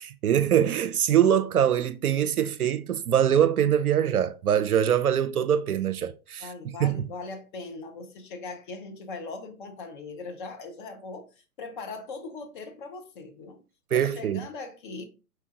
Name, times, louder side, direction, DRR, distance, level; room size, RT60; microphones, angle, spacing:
voice 1, 0.0-6.5 6.8-7.1 13.9-14.4, right 9 dB, 75° right, 0.5 m, -23 dB
voice 2, 6.4-11.3 11.6-13.6 13.9-15.0, left 3 dB, 35° left, 0.8 m, -39 dB
4.5 x 4.4 x 2.5 m
figure-of-eight pair, 120°, 44 cm